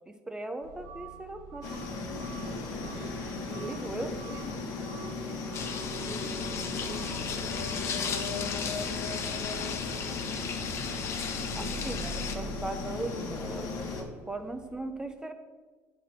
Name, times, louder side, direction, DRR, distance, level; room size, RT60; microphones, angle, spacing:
voice 1, 0.1-1.7 3.7-4.1 11.5-15.3, right 2 dB, 10° right, 6 dB, 0.5 m, -38 dB
sound 1, 0.6-14.7, right 2 dB, 55° right, 1.8 m, -46 dB
sound 2, 1.6-14.0, left 4 dB, 60° left, 1.2 m, -37 dB
voice 2, 2.3-4.9 5.3-10.2 11.4-12.0, right 2 dB, 75° right, 0 dB, 1.7 m, -47 dB
sound 3, 5.5-12.3, left 6 dB, 45° left, 0.8 m, -36 dB
8.9 x 4.2 x 4.2 m, 1.4 s
cardioid pair, 120°, 7 cm